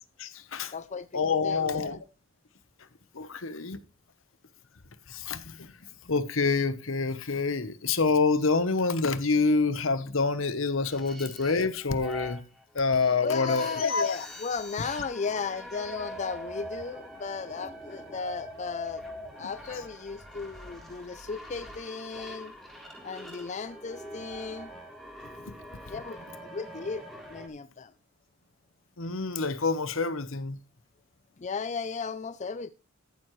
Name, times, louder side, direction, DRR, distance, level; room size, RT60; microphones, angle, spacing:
voice 1, 0.2-0.7 1.1-2.0 3.1-3.8 5.1-5.7 6.1-12.4 12.7-14.2 25.4-25.5 25.9-26.0 29.0-30.6, left 4 dB, 65° left, 1.0 m, -27 dB
voice 2, 0.7-1.1 1.4-1.7 13.2-19.0 19.4-22.5 23.0-24.7 25.9-26.2 26.5-27.0 27.3-27.9 31.4-32.7, left 5 dB, 35° left, 0.5 m, -35 dB
sound 1, 10.8-27.5, equal, ahead, 3.5 m, -44 dB
14.0 x 12.0 x 3.2 m
head